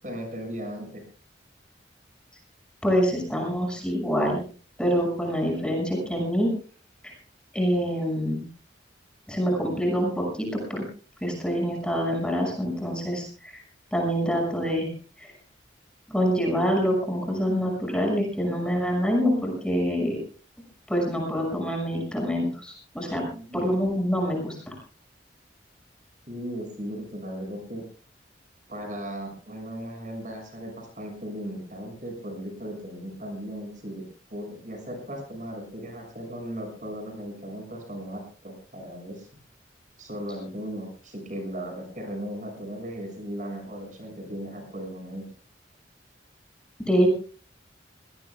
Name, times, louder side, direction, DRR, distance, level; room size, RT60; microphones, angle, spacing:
voice 1, 0.0-1.0 23.3-23.7 26.3-27.8 28.7-34.0 34.3-39.3 40.0-45.2, equal, 45° right, 4 dB, 6.6 m, -37 dB
voice 2, 2.8-4.4 4.8-6.5 7.0-7.1 7.5-8.4 9.3-10.8 11.2-13.6 13.9-14.9 15.2-15.3 16.1-20.2 20.9-23.2 23.5-24.7 46.8-47.1, equal, 5° left, 0 dB, 6.2 m, -26 dB
26.0 x 18.5 x 2.3 m, 0.39 s
head